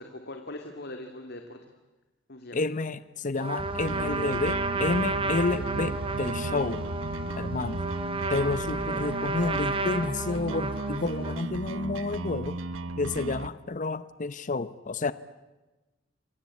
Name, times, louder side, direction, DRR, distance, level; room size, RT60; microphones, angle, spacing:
voice 1, 0.0-1.6 2.3-2.6, left 1 dB, 55° left, 5 dB, 2.5 m, -42 dB
voice 2, 2.5-6.9 7.4-7.8 8.3-12.6 13.0-15.1, left 3 dB, 40° left, 15 dB, 0.8 m, -30 dB
Trumpet, 3.4-11.5, right 3 dB, 30° right, 2.2 m, -32 dB
sound 1, 3.6-9.1, right 1 dB, 60° right, 1.3 m, -40 dB
sound 2, 3.9-13.5, right 3 dB, 90° right, 0.9 m, -36 dB
28.0 x 23.5 x 8.5 m, 1.1 s
head